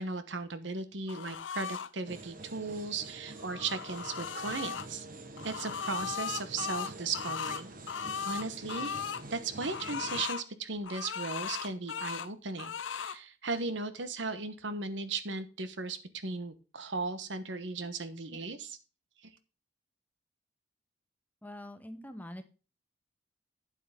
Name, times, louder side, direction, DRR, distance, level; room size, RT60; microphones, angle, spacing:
voice 1, 0.0-5.1 5.4-9.0 9.3-18.8 19.2-19.3, right 3 dB, 75° right, 11 dB, 1.2 m, -37 dB
sound 1, 1.1-1.9 3.3-4.9 5.4-9.2 9.6-10.5 10.8-12.3 12.6-13.2, left 7 dB, 80° left, 0.6 m, -37 dB
sound 2, 2.0-10.2, right 2 dB, 50° right, 1.3 m, -47 dB
voice 2, 21.4-22.4, left 1 dB, 10° left, 8 dB, 1.1 m, -44 dB
9.4 x 7.7 x 3.7 m, 0.33 s
head